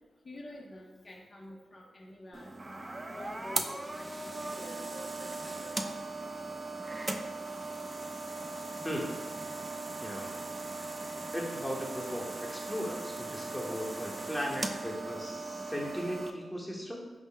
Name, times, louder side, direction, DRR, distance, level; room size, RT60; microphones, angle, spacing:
voice 1, 0.2-2.5 3.1-5.7, left 1 dB, 45° left, -1 dB, 0.5 m, -48 dB
sound 1, 2.3-16.3, right 2 dB, 30° right, 0.3 m, -38 dB
voice 2, 8.8-9.1 10.0-10.3 11.3-17.0, equal, 5° left, -2 dB, 0.9 m, -37 dB
4.3 x 2.0 x 3.7 m, 1.2 s
cardioid pair, 55°, 0 cm